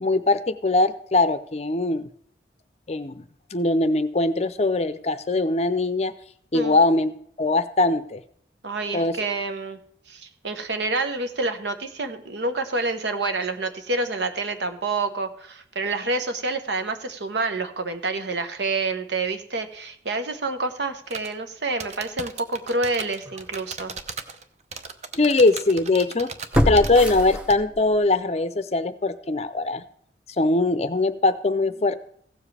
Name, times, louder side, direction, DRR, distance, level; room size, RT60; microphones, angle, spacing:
voice 1, 0.0-2.1 2.9-3.2 3.5-6.1 6.5-7.1 7.4-8.2 8.9-9.2 25.1-26.3 26.6-29.8 30.4-31.9, left 2 dB, 35° left, 12 dB, 0.5 m, -21 dB
voice 2, 8.6-9.8 10.1-23.9, right 3 dB, 75° right, 8 dB, 1.0 m, -28 dB
sound 1, 21.1-21.3 21.8-24.4 24.7-27.2 27.5-27.6, right 5 dB, 40° right, 0.7 m, -36 dB
sound 2, 23.2-23.4 24.0-24.1 26.5-28.0 28.4-28.5, equal, 5° right, 0.8 m, -25 dB
16.0 x 7.3 x 3.3 m, 0.62 s
head